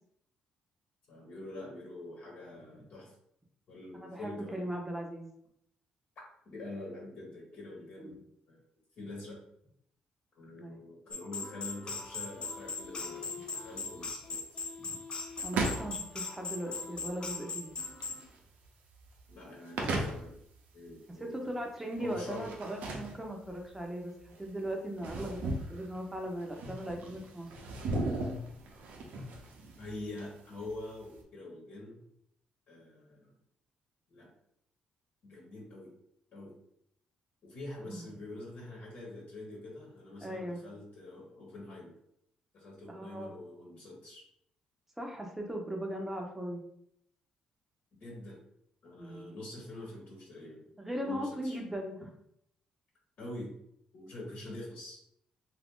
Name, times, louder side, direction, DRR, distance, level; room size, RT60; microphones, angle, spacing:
voice 1, 1.1-3.1 3.7-4.7 6.4-8.6 9.0-9.4 10.3-13.2 13.5-14.6 19.3-20.4 20.7-21.5 22.0-22.5 29.8-32.0 32.7-33.3 34.1-34.3 35.2-35.9 36.3-36.5 37.4-41.9 42.5-44.2 48.0-48.4 48.8-50.6 51.0-51.6 53.2-53.5 53.9-55.0, left 2 dB, 70° left, -3 dB, 1.1 m, -45 dB
voice 2, 4.1-5.3 8.0-8.2 10.6-10.8 15.4-17.8 21.2-24.1 24.4-27.5 37.9-38.0 40.2-40.6 42.9-43.3 45.0-46.6 49.0-49.3 50.8-52.1, equal, 10° right, 1 dB, 0.7 m, -38 dB
sound 1, 11.1-18.2, left 4 dB, 35° left, 0.5 m, -40 dB
sound 2, 12.0-31.2, right 2 dB, 80° right, 0.6 m, -39 dB
2.8 x 2.5 x 3.6 m, 0.73 s
cardioid pair, 85°, 3 cm